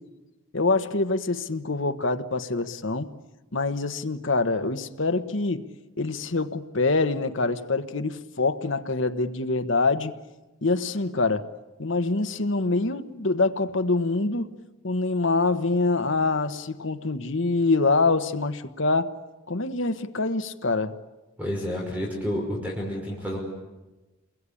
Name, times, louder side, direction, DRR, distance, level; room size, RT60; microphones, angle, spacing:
voice 1, 0.5-3.1 3.5-5.6 6.0-10.1 10.6-11.4 11.8-14.5 14.8-19.1 19.5-20.9, left 3 dB, 60° left, 8 dB, 1.3 m, -25 dB
voice 2, 21.4-23.4, equal, 5° right, -2 dB, 5.4 m, -30 dB
29.5 x 22.0 x 8.6 m, 1.1 s
head